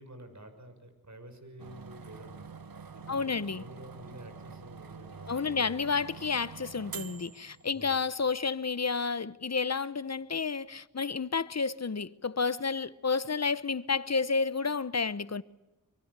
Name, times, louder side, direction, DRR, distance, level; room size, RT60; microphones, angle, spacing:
voice 1, 0.0-2.5 2.9-5.9 7.7-8.0, right 1 dB, 50° right, 6.4 m, -50 dB
sound 1, 1.6-8.1, right 5 dB, 80° right, 1.1 m, -46 dB
voice 2, 3.1-3.6 5.3-15.4, left 5 dB, 50° left, 1.0 m, -30 dB
24.5 x 23.5 x 8.2 m
cardioid pair, 45°, 35 cm